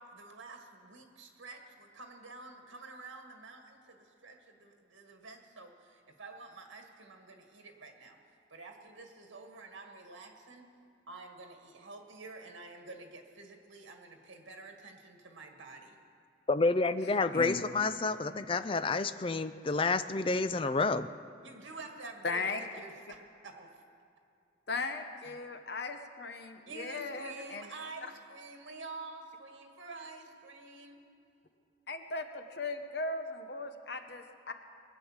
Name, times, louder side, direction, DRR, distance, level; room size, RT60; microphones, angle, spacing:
voice 1, 0.0-8.2 8.5-10.7 11.1-16.0 21.4-23.2 23.4-23.8 26.7-31.0, right 3 dB, 85° right, 3 dB, 1.8 m, -48 dB
voice 2, 16.5-21.1, left 3 dB, 25° left, 11 dB, 0.4 m, -29 dB
voice 3, 22.2-22.6 24.7-27.7 28.0-28.1 31.9-34.5, left 3 dB, 55° left, 7 dB, 1.0 m, -37 dB
21.5 x 9.3 x 7.3 m, 2.5 s
head